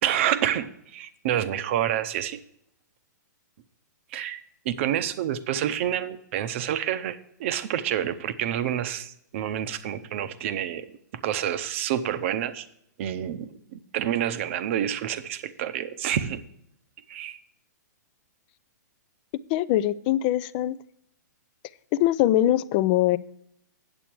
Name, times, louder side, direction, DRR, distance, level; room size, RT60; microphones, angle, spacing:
voice 1, 0.0-2.4 4.1-4.4 4.6-10.9 11.2-12.7 13.0-16.4 17.1-17.4, right 10 dB, 45° right, 12 dB, 0.7 m, -28 dB
voice 2, 19.5-20.8 21.9-23.2, left 13 dB, 30° left, 18 dB, 0.3 m, -22 dB
8.8 x 8.1 x 4.6 m, 0.73 s
hypercardioid pair, 155°, 10 cm